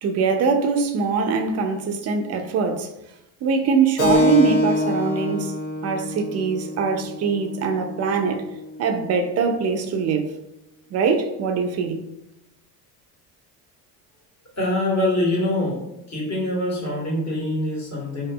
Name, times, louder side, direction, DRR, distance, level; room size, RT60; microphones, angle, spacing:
voice 1, 0.0-2.9 3.4-5.5 5.8-8.4 8.8-10.4 10.9-12.0, right 5 dB, 35° right, 5 dB, 0.4 m, -22 dB
Keyboard (musical), 4.0-9.1, left 1 dB, 70° left, 1.0 m, -25 dB
voice 2, 14.6-15.8 16.1-18.3, left 1 dB, 35° left, -4 dB, 1.4 m, -24 dB
2.8 x 2.5 x 2.3 m, 0.89 s
hypercardioid pair, 70°, 49 cm